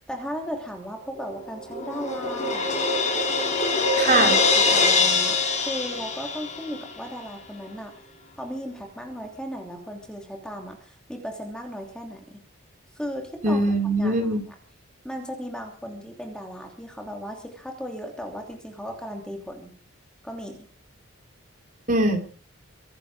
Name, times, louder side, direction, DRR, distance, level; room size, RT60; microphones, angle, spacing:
voice 1, 0.1-2.7 4.1-7.9 8.4-12.4 12.9-13.6 14.0-14.3 15.0-19.7 20.2-20.7, equal, 5° left, 2 dB, 2.9 m, -36 dB
Crash cymbal, 1.2-6.9, left 4 dB, 35° left, 5.7 m, -23 dB
voice 2, 4.0-4.4 13.4-14.4 21.9-22.2, right 2 dB, 40° right, 4 dB, 4.1 m, -21 dB
24.5 x 11.0 x 4.9 m, 0.40 s
head